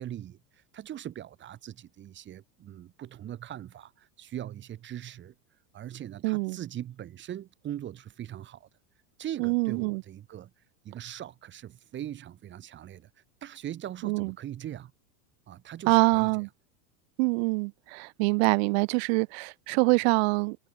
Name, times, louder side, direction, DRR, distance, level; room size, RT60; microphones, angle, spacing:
voice 1, 0.0-5.3 5.7-8.7 9.2-10.5 10.8-13.1 13.4-14.9 15.5-16.3, right 11 dB, 25° right, 5.2 m, -40 dB
voice 2, 6.2-6.6 9.4-10.0 14.0-14.3 15.9-16.5 17.2-20.6, right 31 dB, 45° right, 0.9 m, -25 dB
supercardioid pair, 165°, 44 cm